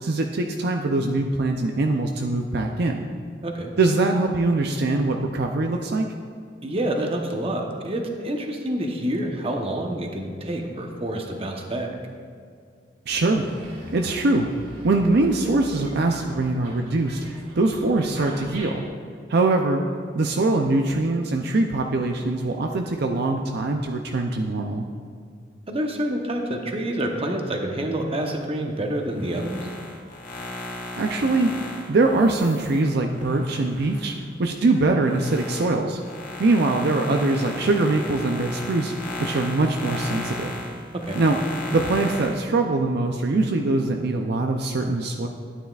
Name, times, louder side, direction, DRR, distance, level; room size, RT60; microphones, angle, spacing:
voice 1, 0.0-3.1 3.8-6.1 13.1-13.4 13.9-14.5 14.8-17.2 17.6-18.8 19.3-19.8 20.1-24.8 31.0-31.5 31.9-36.0 36.4-38.9 39.2-40.5 41.2-41.4 41.7-45.3, right 2 dB, 60° right, 3 dB, 0.5 m, -22 dB
voice 2, 3.4-3.7 6.6-11.9 25.7-29.7 40.9-41.2, right 1 dB, 30° right, 2 dB, 0.9 m, -27 dB
Dog, 13.3-18.9, equal, 80° right, 2.4 m, -42 dB
sound 1, 29.1-34.2 34.6-42.5, left 2 dB, 45° left, 1.4 m, -35 dB
12.5 x 9.5 x 2.4 m, 2.2 s
head